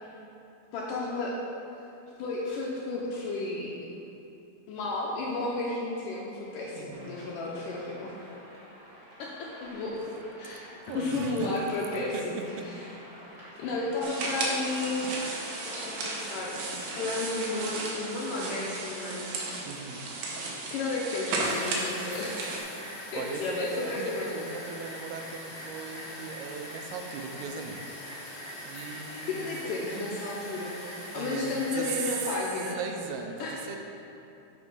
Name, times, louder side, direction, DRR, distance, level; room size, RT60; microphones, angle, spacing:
voice 1, 0.7-1.4 1.8-1.9 2.2-3.8 4.7-8.1 9.2-10.6 10.9-12.4 12.7-12.8 13.6-19.3 20.7-22.7 23.1-24.3 29.3-30.8 31.1-32.8 33.4-33.7, left 2 dB, 75° left, -3 dB, 2.0 m, -33 dB
voice 2, 6.8-7.3 10.9-11.6 12.1-12.2 12.6-12.7 19.7-20.0 22.7-22.8 23.1-29.7 31.1-32.2 32.8-33.8, right 5 dB, 90° right, 4 dB, 2.6 m, -38 dB
sound 1, 6.9-17.6, equal, 40° right, 0.7 m, -49 dB
sound 2, 14.0-22.6, right 2 dB, 70° right, 2.7 m, -34 dB
sound 3, 21.4-32.4, left 1 dB, 60° left, 1.1 m, -42 dB
8.1 x 5.4 x 5.5 m, 2.8 s
omnidirectional pair, 4.5 m